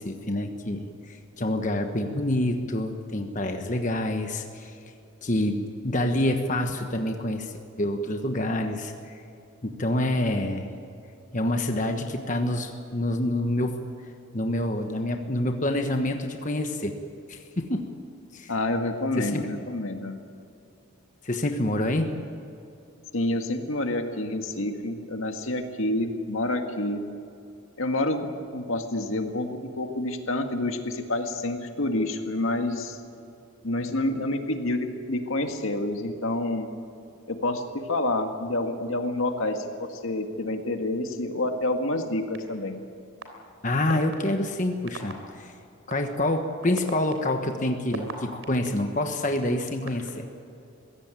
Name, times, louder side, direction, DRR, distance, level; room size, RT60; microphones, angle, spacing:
voice 1, 0.0-4.7 5.2-9.1 9.6-10.7 11.3-13.8 14.3-16.9 17.3-18.0 18.3-18.5 19.2-19.5 21.2-22.1 43.6-45.5 45.9-50.3, left 1 dB, 40° left, 5 dB, 1.3 m, -27 dB
voice 2, 18.5-20.2 23.1-27.0 27.8-28.3 28.5-33.0 33.6-36.7 37.3-42.8, left 2 dB, 80° left, 5 dB, 1.9 m, -28 dB
sound 1, 42.3-42.4 43.2-43.3 43.9-44.1 44.9-45.1 45.9-46.0 46.6-48.7 49.3-50.1, right 3 dB, 75° right, 3.4 m, -36 dB
22.5 x 16.5 x 9.1 m, 2.6 s
head